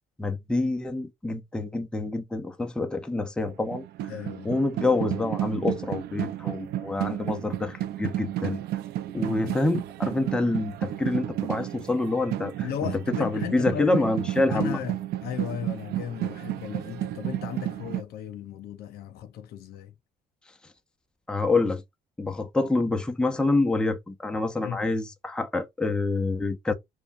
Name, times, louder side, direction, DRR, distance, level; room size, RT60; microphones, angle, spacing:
voice 1, 0.2-3.8 4.4-8.6 9.1-12.9 13.2-14.8 21.3-21.8 22.2-26.7, left 2 dB, 5° left, 0.6 m, -27 dB
sound 1, 3.5-18.0, right 13 dB, 70° right, 0.5 m, -32 dB
voice 2, 4.1-4.6 9.1-9.6 12.6-14.0 14.5-20.0 24.6-24.8, left 9 dB, 70° left, 0.8 m, -36 dB
5.0 x 2.2 x 2.6 m
cardioid pair, 110°, 17 cm